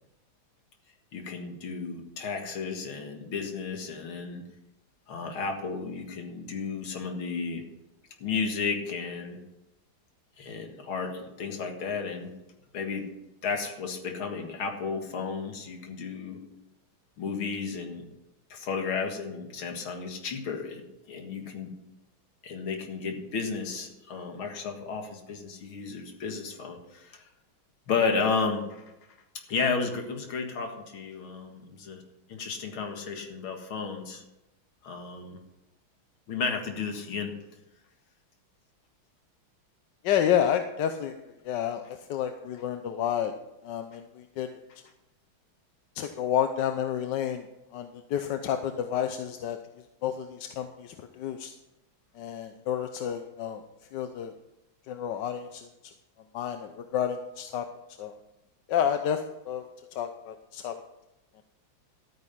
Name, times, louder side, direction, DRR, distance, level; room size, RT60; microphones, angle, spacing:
voice 1, 1.1-4.4 5.1-7.6 8.2-9.4 10.4-12.3 12.7-13.1 13.4-16.4 17.2-18.1 18.5-21.7 22.4-27.3 27.9-28.8 29.5-32.0 32.3-34.2 34.8-35.4 36.3-37.3, left 5 dB, 80° left, 4 dB, 2.6 m, -33 dB
voice 2, 40.0-41.1 41.4-43.3 43.6-44.6 46.0-47.4 47.7-49.6 50.0-51.6 52.2-53.6 53.9-54.3 54.9-55.9 56.3-57.6 58.0-58.2 58.7-59.7 59.9-60.8, left 9 dB, 65° left, 7 dB, 1.3 m, -30 dB
13.0 x 9.5 x 5.7 m, 0.94 s
omnidirectional pair, 2.2 m